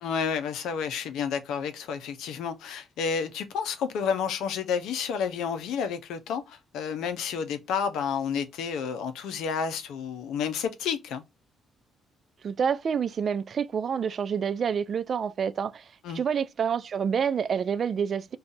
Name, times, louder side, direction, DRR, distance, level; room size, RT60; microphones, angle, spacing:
voice 1, 0.0-11.2 16.0-16.2, left 6 dB, 85° left, 0.6 m, -30 dB
voice 2, 12.4-15.8 16.1-18.4, right 7 dB, 50° right, 0.3 m, -28 dB
2.6 x 2.4 x 3.8 m
cardioid pair, 90°, 0 cm